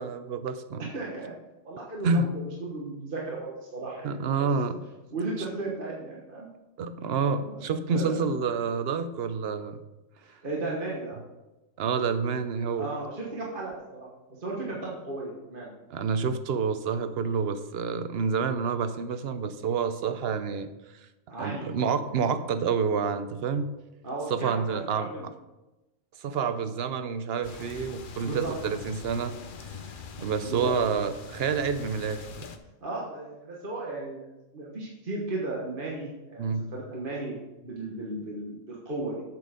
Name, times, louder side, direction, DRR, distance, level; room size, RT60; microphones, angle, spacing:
voice 1, 0.0-0.9 2.0-2.3 4.0-4.8 6.8-9.8 11.8-12.9 15.9-20.7 21.4-23.7 24.3-25.1 26.2-29.3 30.2-32.5 36.4-36.6, right 5 dB, 60° right, 11 dB, 0.8 m, -28 dB
voice 2, 0.9-1.3 1.6-4.1 4.4-4.5 5.1-6.5 7.4-8.2 10.2-11.2 12.8-15.7 21.3-21.7 24.0-25.3 28.2-28.5 30.4-30.7 32.8-34.2 34.5-37.3 37.6-39.2, right 2 dB, 40° right, -4 dB, 1.5 m, -35 dB
sound 1, 27.4-32.6, left 6 dB, 50° left, 0.7 m, -43 dB
8.5 x 6.6 x 5.0 m, 1.0 s
omnidirectional pair, 1.4 m